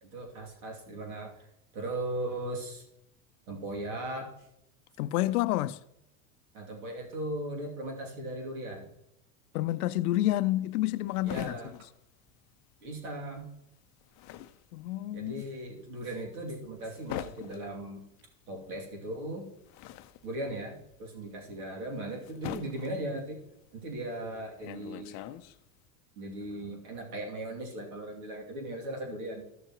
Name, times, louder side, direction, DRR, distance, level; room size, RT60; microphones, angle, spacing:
voice 1, 0.0-1.5 1.7-2.8 3.5-4.3 6.5-8.9 11.2-11.7 12.8-13.5 15.1-18.0 18.5-19.5 20.2-23.4 23.8-25.2 26.2-29.5, right 1 dB, 85° right, 2.6 m, -38 dB
voice 2, 5.0-5.8 9.5-11.5 14.7-15.4, left 15 dB, 90° left, 0.5 m, -29 dB
sound 1, 10.4-13.0 13.2-25.9, left 13 dB, 40° left, 0.5 m, -44 dB
14.5 x 6.9 x 3.0 m
supercardioid pair, 120°, 43 cm